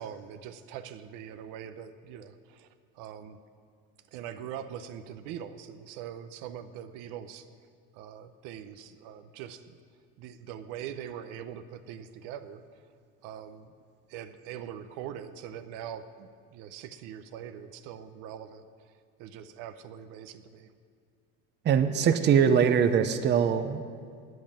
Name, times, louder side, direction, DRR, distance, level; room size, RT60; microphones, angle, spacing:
voice 1, 0.0-2.7 3.0-3.4 4.1-7.4 7.9-9.8 10.2-12.6 13.2-13.7 14.1-18.7 19.2-20.7, right 9 dB, 75° right, 10 dB, 0.7 m, -42 dB
voice 2, 21.6-23.8, right 7 dB, 35° right, 8 dB, 0.6 m, -22 dB
9.2 x 7.8 x 8.6 m, 2.1 s
cardioid pair, 125°, 33 cm